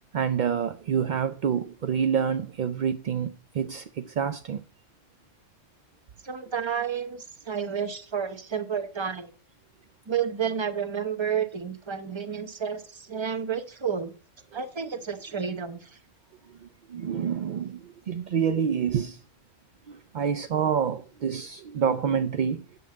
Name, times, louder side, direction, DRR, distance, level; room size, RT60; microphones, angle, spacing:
voice 1, 0.1-4.6 14.5-14.6 16.6-19.2 19.9-22.6, right 7 dB, 60° right, 0.4 m, -27 dB
voice 2, 6.2-9.3 10.1-14.1 14.5-15.9, right 7 dB, 25° right, 0.8 m, -31 dB
7.3 x 5.5 x 7.5 m
omnidirectional pair, 1.3 m